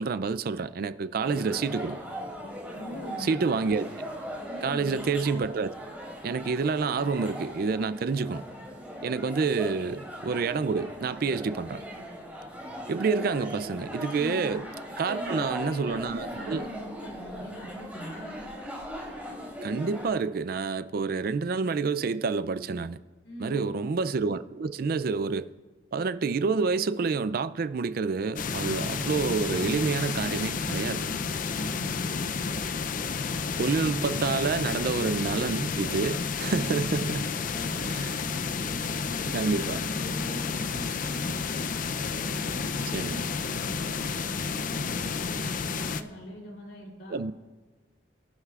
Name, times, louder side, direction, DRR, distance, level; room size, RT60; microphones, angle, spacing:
voice 1, 0.0-2.0 3.2-4.1 4.6-5.7 6.2-8.4 9.0-11.8 12.9-14.7 15.0-16.7 19.6-23.0 23.4-25.5 25.9-31.0 33.6-37.3 37.9-38.1 39.3-39.8 42.9-43.2 47.1-47.3, right 4 dB, 50° right, 0.4 m, -28 dB
sound 1, 1.2-20.1, equal, 10° right, 3.5 m, -39 dB
voice 2, 2.7-3.4 4.4-5.0 14.1-14.4 15.0-18.4 23.2-23.8 31.4-32.5 36.5-36.9 37.3-38.0 38.5-41.6 42.0-47.2, equal, 70° left, 3.4 m, -42 dB
sound 2, 28.4-46.0, left 5 dB, 45° left, 0.5 m, -31 dB
24.0 x 11.5 x 2.4 m
head